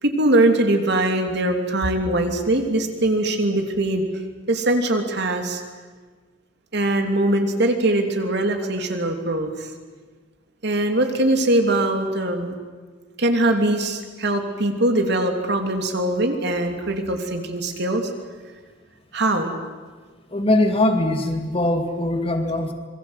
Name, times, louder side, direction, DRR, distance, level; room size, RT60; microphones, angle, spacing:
voice 1, 0.0-4.0 4.5-5.6 6.7-9.7 10.6-12.5 13.2-18.1 19.1-19.5, right 1 dB, 65° right, 5 dB, 3.0 m, -21 dB
voice 2, 20.3-22.7, left 1 dB, 30° left, 5 dB, 2.4 m, -21 dB
26.0 x 22.0 x 8.2 m, 1.5 s
head